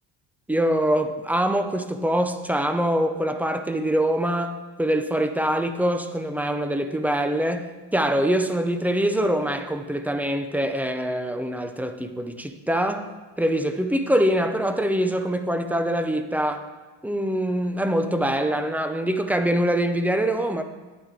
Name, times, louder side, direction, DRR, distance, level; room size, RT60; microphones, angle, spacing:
voice 1, 0.5-13.1 13.4-16.6 17.0-20.6, right 1 dB, 5° right, 8 dB, 0.5 m, -24 dB
11.0 x 8.8 x 3.7 m, 1.3 s
cardioid pair, 140°, 38 cm